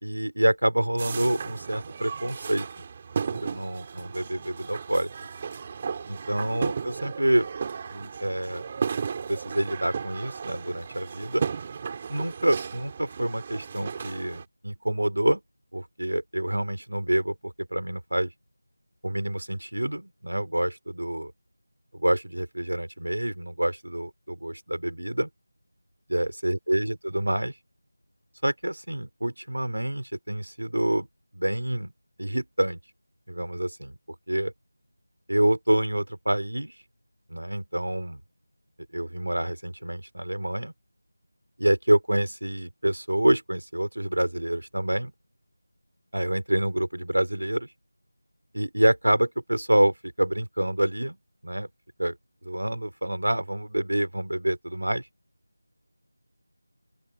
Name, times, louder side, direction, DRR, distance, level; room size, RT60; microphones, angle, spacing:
voice 1, 0.0-2.7 3.3-5.1 6.1-7.5 7.9-8.6 9.3-11.5 12.1-15.4 15.7-18.3 19.0-21.3 21.9-25.3 26.1-27.5 28.4-31.1 31.3-31.9 32.2-32.8 33.3-34.0 34.3-34.5 35.3-36.7 37.3-38.2 38.9-40.7 41.6-45.1 46.1-47.7 48.5-51.2 51.4-51.7 52.0-52.2 52.4-55.0, right 1 dB, 80° right, 4.0 m, -27 dB
sound 1, 1.0-14.4, right 6 dB, 20° right, 6.0 m, -35 dB
open air
figure-of-eight pair, 170°, 0 cm